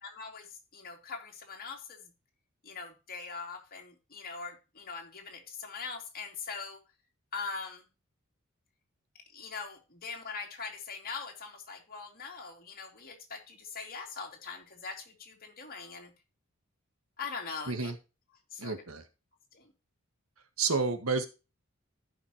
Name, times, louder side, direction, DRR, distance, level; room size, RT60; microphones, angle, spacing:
voice 1, 0.0-2.1 2.6-6.8 7.3-7.8 9.1-16.1 17.2-17.9 18.5-18.8 19.5-19.7, left 5 dB, 45° left, 2 dB, 2.7 m, -42 dB
voice 2, 18.6-19.0 20.6-21.3, right 4 dB, 80° right, 9 dB, 1.6 m, -30 dB
15.0 x 5.7 x 3.0 m, 0.30 s
head